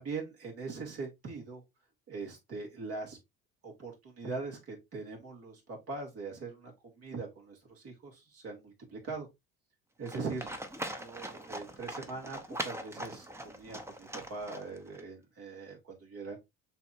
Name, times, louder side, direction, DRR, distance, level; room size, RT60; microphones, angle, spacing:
voice 1, 0.0-1.6 2.1-3.2 3.6-9.3 10.0-10.5 11.0-16.4, right 4 dB, 50° right, 2.6 m, -41 dB
Livestock farm animals working animals, 10.1-15.0, right 1 dB, 10° right, 0.9 m, -41 dB
6.8 x 3.0 x 2.6 m
supercardioid pair, 85°, 30 cm